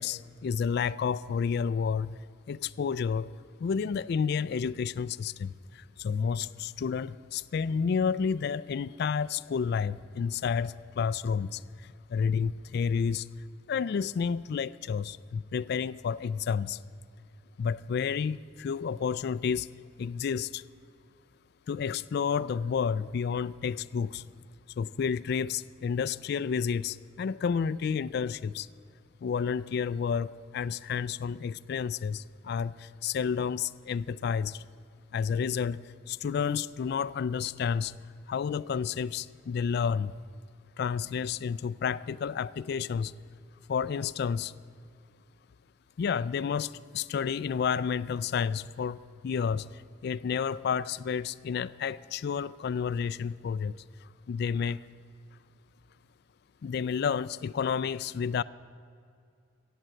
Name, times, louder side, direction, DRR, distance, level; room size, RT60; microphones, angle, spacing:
voice 1, 0.0-2.2 2.5-3.3 3.6-13.3 13.7-16.8 17.6-19.7 20.0-20.6 21.7-24.3 24.8-28.7 29.2-34.6 35.1-38.0 38.3-40.2 40.8-43.1 43.7-44.5 46.0-54.9 56.6-58.4, left 6 dB, 55° left, 17 dB, 0.3 m, -30 dB
16.0 x 7.6 x 8.9 m, 2.4 s
head